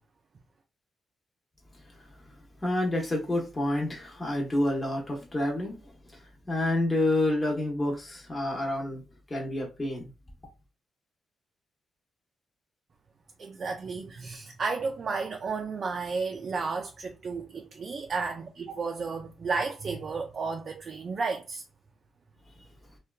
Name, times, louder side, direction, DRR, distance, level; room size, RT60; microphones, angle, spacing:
voice 1, 1.9-2.3 2.6-9.0 9.3-10.1, left 1 dB, 20° left, 0.8 m, -29 dB
voice 2, 13.4-21.6, right 4 dB, 50° right, 0.4 m, -33 dB
2.8 x 2.2 x 2.3 m
cardioid pair, 85°, 0 cm